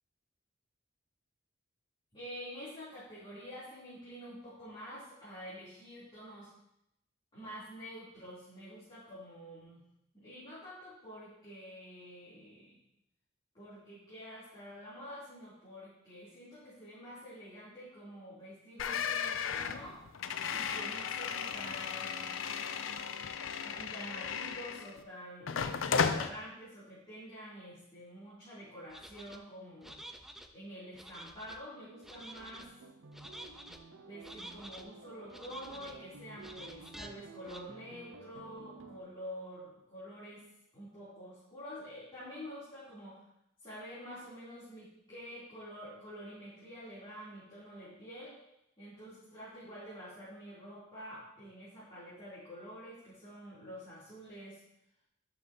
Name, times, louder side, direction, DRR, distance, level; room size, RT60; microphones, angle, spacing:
voice 1, 2.1-6.5 7.3-9.8 10.1-12.8 13.5-20.0 20.5-22.4 23.6-30.0 30.5-32.6 34.0-40.4 40.7-43.2 43.6-48.4 48.8-54.6, equal, 25° left, -12 dB, 3.3 m, -48 dB
sound 1, 18.8-25.0 25.5-26.3, left 6 dB, 75° left, 0.5 m, -35 dB
sound 2, 28.9-29.4 29.8-30.5 30.9-31.6 32.0-32.7 33.1-33.8 34.2-34.8 35.3-36.0 36.4-37.1 37.5-37.6, equal, ahead, 0.5 m, -49 dB
sound 3, 31.8-39.0, right 3 dB, 70° right, 0.7 m, -53 dB
11.0 x 6.7 x 2.9 m, 0.79 s
head